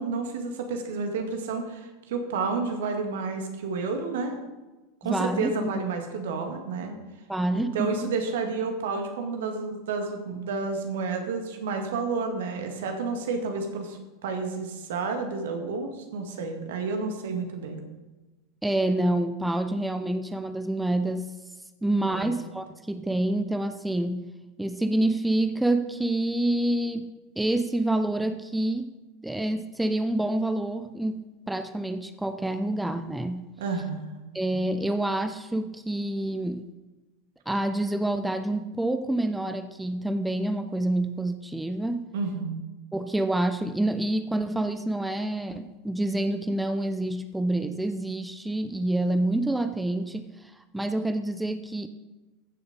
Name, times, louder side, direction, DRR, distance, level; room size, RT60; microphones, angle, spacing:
voice 1, 0.0-4.4 5.0-7.0 7.7-17.8 22.1-22.3 33.6-34.2 42.1-42.6, right 4 dB, 65° right, 4 dB, 1.9 m, -30 dB
voice 2, 5.0-5.8 7.3-8.1 18.6-21.3 21.8-24.2 24.6-27.1 27.4-28.9 29.2-33.4 34.3-36.6 37.5-42.0 42.9-51.9, right 1 dB, 5° right, 9 dB, 0.7 m, -27 dB
15.0 x 6.8 x 5.4 m, 1.1 s
figure-of-eight pair, 85°, 0 cm